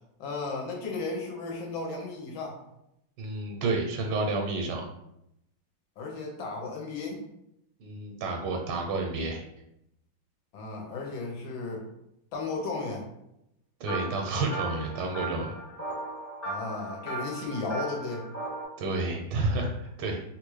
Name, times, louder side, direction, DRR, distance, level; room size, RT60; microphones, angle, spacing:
voice 1, 0.2-2.6 6.0-7.2 10.5-11.8 12.3-13.1 16.4-18.2, left 3 dB, 75° left, -1 dB, 1.6 m, -34 dB
voice 2, 3.2-4.8 7.8-9.4 13.8-15.5 18.8-20.3, right 3 dB, 85° right, 2 dB, 1.5 m, -30 dB
sound 1, 13.9-18.7, right 1 dB, 20° left, 0.5 m, -37 dB
3.6 x 2.4 x 3.1 m, 0.81 s
omnidirectional pair, 2.2 m